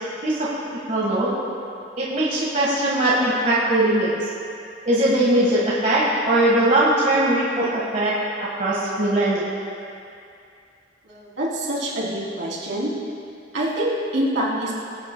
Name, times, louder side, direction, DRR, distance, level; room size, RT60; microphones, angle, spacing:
voice 1, 0.9-1.3 2.0-4.2 4.8-9.5, right 1 dB, 35° right, -7 dB, 1.5 m, -20 dB
voice 2, 11.0-12.9 13.5-14.7, right 1 dB, 70° right, -6 dB, 2.9 m, -25 dB
21.0 x 9.0 x 2.2 m, 2.5 s
head